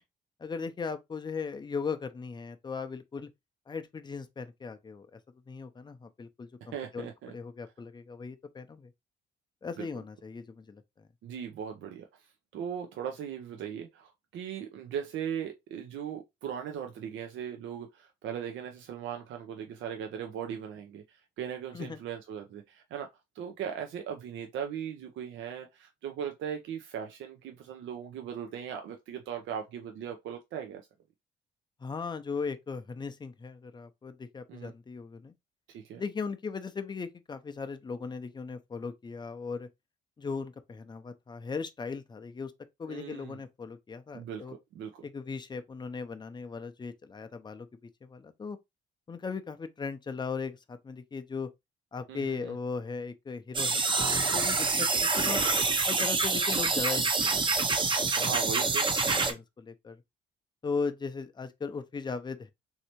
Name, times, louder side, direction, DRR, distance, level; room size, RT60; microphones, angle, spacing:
voice 1, 0.4-3.3 3.7-5.2 5.5-7.1 7.3-8.9 9.6-11.1 21.7-22.0 31.8-35.3 36.0-39.7 40.2-42.5 42.8-44.6 45.0-48.6 49.1-51.5 51.9-55.5 55.9-57.6 58.0-58.7 59.1-60.0 60.6-62.5, left 5 dB, 20° left, 0.5 m, -38 dB
voice 2, 6.6-7.3 9.8-9.9 11.2-23.1 23.3-30.8 34.5-34.7 35.7-36.0 42.9-43.4 44.1-45.0 52.1-52.6 58.2-59.3, right 8 dB, 75° right, 0.5 m, -39 dB
sound 1, 53.5-59.3, right 3 dB, 25° right, 0.6 m, -26 dB
3.2 x 2.8 x 2.9 m
cardioid pair, 90°, 20 cm